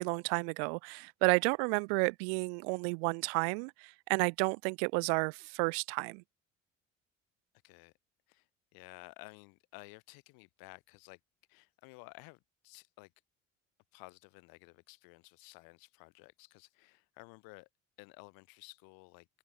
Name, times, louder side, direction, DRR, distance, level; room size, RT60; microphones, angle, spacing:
voice 1, 0.0-6.2, right 40 dB or more, 60° right, 0.9 m, -31 dB
voice 2, 8.3-11.2 11.5-13.1 13.9-17.7 18.0-19.3, left 27 dB, 60° left, 3.5 m, -54 dB
open air
figure-of-eight pair, 55°, 39 cm